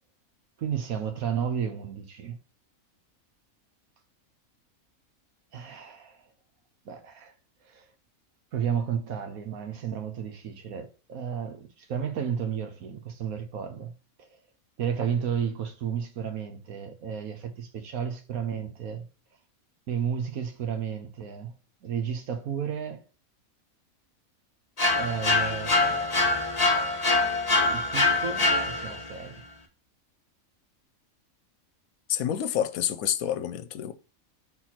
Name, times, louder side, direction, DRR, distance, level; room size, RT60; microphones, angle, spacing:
voice 1, 0.6-2.4 5.5-6.2 6.8-7.3 7.6-7.8 8.5-13.9 14.2-14.4 14.8-19.0 19.9-21.5 21.8-23.0 24.9-26.5 27.6-29.4, right 7 dB, 80° right, 1.4 m, -32 dB
sound 1, 24.8-29.1, left 2 dB, 30° left, 1.2 m, -24 dB
voice 2, 32.1-33.9, left 10 dB, 80° left, 1.1 m, -28 dB
4.4 x 4.2 x 5.8 m
omnidirectional pair, 1.5 m